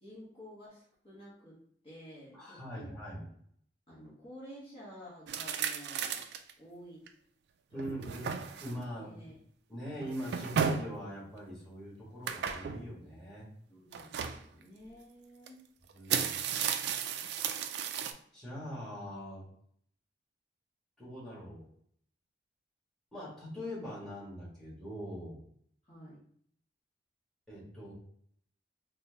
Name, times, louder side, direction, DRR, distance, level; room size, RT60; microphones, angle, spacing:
voice 1, 0.0-1.6 1.8-3.0 3.9-6.3 6.6-7.1 7.7-8.3 9.0-9.4 13.7-15.6 25.8-26.2, equal, 35° left, -7 dB, 1.1 m, -51 dB
voice 2, 2.3-3.3 7.7-8.3 8.6-9.2 9.7-13.5 15.9-16.4 18.3-19.4 21.0-21.7 23.1-25.4 27.5-27.9, equal, 5° left, -7 dB, 1.5 m, -42 dB
sound 1, 5.3-6.5 7.1-7.2 7.7-8.8 10.0-11.0 12.3-12.9 13.9-14.4 15.5-15.6 15.9-18.1, right 7 dB, 65° right, 0.3 m, -34 dB
4.2 x 2.2 x 2.7 m, 0.64 s
head